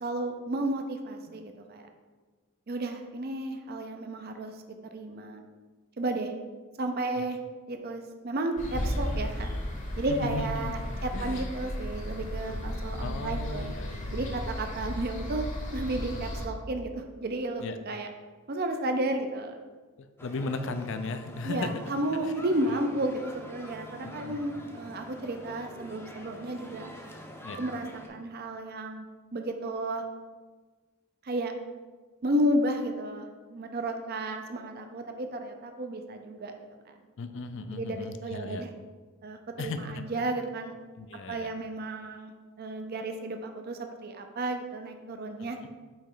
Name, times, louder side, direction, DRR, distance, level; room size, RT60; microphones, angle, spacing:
voice 1, 0.0-1.9 2.7-4.5 4.9-5.4 6.0-6.3 6.8-7.4 7.7-9.5 10.0-13.7 14.1-15.5 15.7-18.1 18.5-19.6 21.4-26.9 27.6-29.1 29.3-30.0 31.2-31.5 32.2-36.5 36.9-37.0 37.7-38.7 39.2-40.7 41.3-45.6, right 1 dB, 45° right, 5 dB, 0.5 m, -32 dB
sound 1, 8.6-16.5, equal, 35° left, 0.9 m, -34 dB
voice 2, 10.1-11.5 12.4-12.6 13.0-14.5 17.6-17.8 20.0-21.7 22.2-22.3 22.7-22.8 24.0-24.4 27.4-27.6 37.2-38.6 39.6-40.0 41.0-41.5, left 3 dB, 55° left, 9 dB, 0.4 m, -37 dB
sound 2, 20.2-28.1, equal, 10° left, 0.6 m, -45 dB
8.6 x 3.1 x 3.8 m, 1.4 s
head